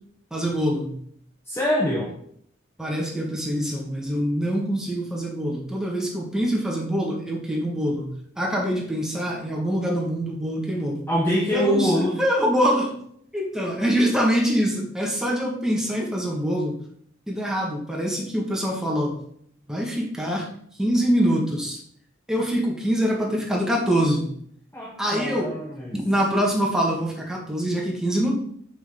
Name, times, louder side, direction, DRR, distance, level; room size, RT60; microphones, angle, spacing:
voice 1, 0.3-1.0 2.8-11.0 11.5-13.0 13.3-16.7 17.3-19.2 19.7-20.5 20.8-21.8 22.3-24.4 25.0-25.5 25.9-28.3, equal, 5° right, -3 dB, 1.5 m, -24 dB
voice 2, 1.5-2.1 11.1-12.2 24.7-26.0, equal, 10° left, -2 dB, 0.8 m, -24 dB
5.9 x 5.9 x 3.6 m, 0.66 s
head